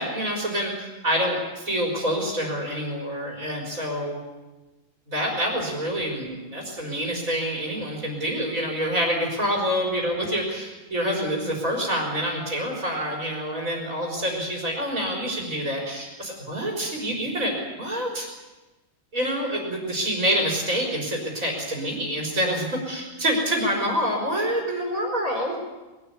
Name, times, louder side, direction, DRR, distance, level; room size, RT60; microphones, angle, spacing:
voice 1, 0.0-4.2 5.1-18.3 19.1-25.5, equal, 75° right, -2 dB, 4.7 m, -27 dB
21.5 x 13.0 x 9.8 m, 1.1 s
omnidirectional pair, 1.4 m